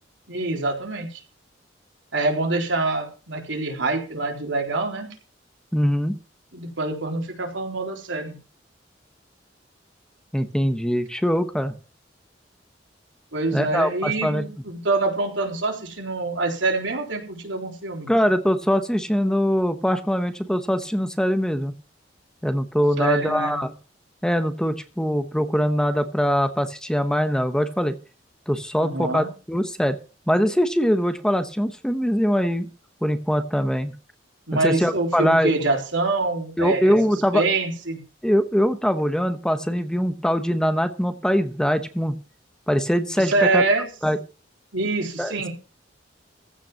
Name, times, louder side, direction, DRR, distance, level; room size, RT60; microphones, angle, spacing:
voice 1, 0.3-1.2 2.1-5.1 6.5-8.4 13.3-18.1 23.0-23.6 28.8-29.3 34.5-36.9 37.3-38.0 43.2-43.9 44.7-45.5, right 3 dB, 85° right, 2 dB, 4.0 m, -25 dB
voice 2, 5.7-6.2 10.3-11.7 13.5-14.4 18.1-21.7 22.4-23.7 24.2-27.9 28.5-30.0 30.3-32.7 33.0-33.9 34.5-35.6 36.6-37.4 38.2-42.1 42.7-43.6 44.0-44.2 45.2-45.5, equal, 5° left, 9 dB, 1.0 m, -22 dB
15.5 x 5.7 x 7.5 m, 0.35 s
head